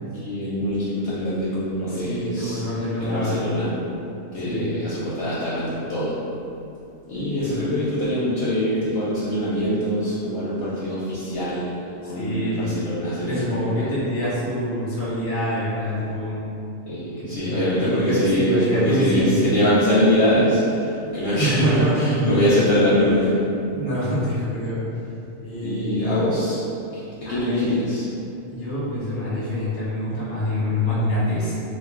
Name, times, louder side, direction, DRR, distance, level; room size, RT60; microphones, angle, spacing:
voice 1, 0.1-2.6 3.0-3.7 4.3-6.2 7.1-13.9 16.9-21.7 21.9-23.3 25.6-26.6 26.9-27.0 27.3-28.1, equal, 65° left, -9 dB, 0.6 m, -23 dB
voice 2, 1.9-3.4 4.4-4.6 7.4-7.5 12.0-12.7 13.2-16.4 17.2-19.5 21.4-22.5 23.7-24.8 25.4-26.3 27.2-27.7 28.5-31.5, equal, 15° left, -9 dB, 0.5 m, -25 dB
2.4 x 2.0 x 3.6 m, 2.8 s
omnidirectional pair, 1.4 m